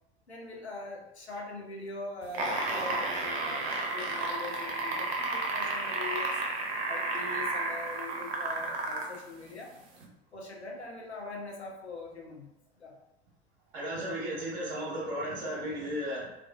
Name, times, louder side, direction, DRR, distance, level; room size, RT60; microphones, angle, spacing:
voice 1, 0.3-6.4 6.9-9.8 10.3-12.5 12.8-13.0, left 3 dB, 90° left, -1 dB, 0.5 m, -42 dB
sound 1, 2.2-9.2 10.0-10.1, right 3 dB, 65° right, 0.6 m, -32 dB
voice 2, 13.7-16.3, equal, 45° right, -7 dB, 0.9 m, -34 dB
2.4 x 2.3 x 2.2 m, 0.88 s
figure-of-eight pair, 75°, 32 cm